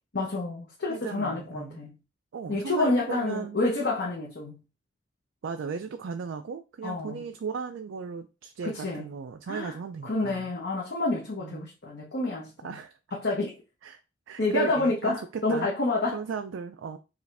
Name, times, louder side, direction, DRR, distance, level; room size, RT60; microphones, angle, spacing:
voice 1, 0.1-1.9 2.5-4.6 6.8-7.2 8.6-9.0 9.5-9.7 10.0-12.8 13.1-13.5 14.4-16.2, left 2 dB, 55° left, 0.8 m, -28 dB
voice 2, 0.9-1.8 2.3-3.6 5.4-10.5 11.4-11.7 12.6-12.9 13.8-14.0 14.3-15.7 16.1-17.0, right 5 dB, 75° right, 0.4 m, -36 dB
4.8 x 2.5 x 3.3 m
head